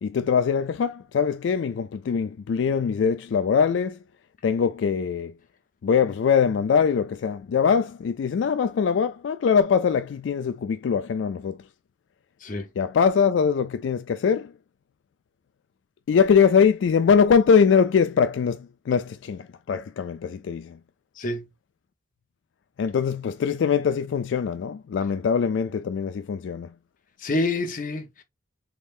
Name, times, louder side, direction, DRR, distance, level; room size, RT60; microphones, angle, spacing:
voice 1, 0.0-4.0 4.4-5.3 5.8-11.6 12.8-14.5 16.1-20.8 22.8-26.7, left 6 dB, 85° left, 0.3 m, -22 dB
voice 2, 21.2-21.5 27.2-28.2, left 2 dB, 45° left, 0.7 m, -27 dB
3.7 x 3.2 x 2.4 m
head